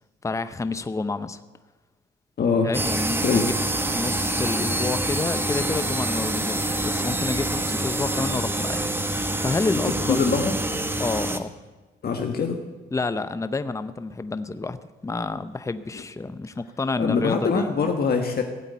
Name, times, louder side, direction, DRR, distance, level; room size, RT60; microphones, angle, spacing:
voice 1, 0.2-1.4 2.6-3.6 3.9-10.2 11.0-11.5 12.9-14.8 15.0-17.9, left 3 dB, 15° left, 12 dB, 0.7 m, -29 dB
voice 2, 2.4-2.7 3.2-3.5 10.1-10.5 12.0-12.6 17.0-18.4, left 5 dB, 50° left, 3 dB, 1.5 m, -23 dB
sound 1, 2.7-11.4, right 1 dB, 10° right, 1.2 m, -26 dB
16.5 x 8.0 x 9.4 m, 1.2 s
cardioid pair, 90°, 20 cm